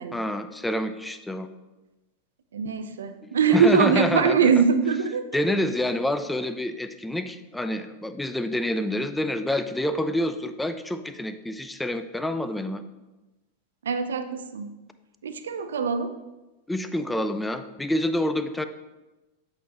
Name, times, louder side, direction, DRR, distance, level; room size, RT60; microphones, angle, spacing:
voice 1, 0.1-1.5 3.5-4.5 5.3-12.8 16.7-18.6, left 1 dB, 5° left, 9 dB, 0.3 m, -27 dB
voice 2, 2.5-5.2 13.8-14.7 15.2-16.1, right 6 dB, 65° right, 9 dB, 0.5 m, -22 dB
8.0 x 4.4 x 2.9 m, 1.1 s
figure-of-eight pair, 90°, 0 cm